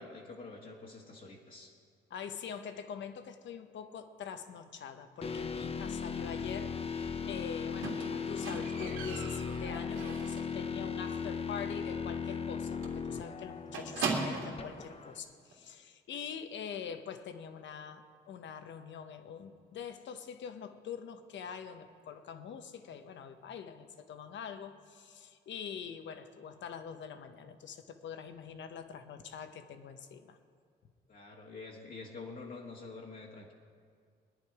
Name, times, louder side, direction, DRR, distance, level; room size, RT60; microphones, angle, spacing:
voice 1, 0.0-1.7 31.1-33.5, left 3 dB, 45° left, -3 dB, 1.6 m, -47 dB
voice 2, 2.1-30.4, left 7 dB, 65° left, 9 dB, 1.0 m, -44 dB
sound 1, 5.2-15.2, left 6 dB, 30° left, 0.7 m, -37 dB
Squeak, 7.8-10.6 10.9-11.3 11.6-11.7 12.1-12.2 12.4-12.6 12.8-14.7 15.5-15.6, right 4 dB, 85° right, 2.2 m, -38 dB
19.5 x 10.0 x 4.8 m, 2.2 s
cardioid pair, 90°, 20 cm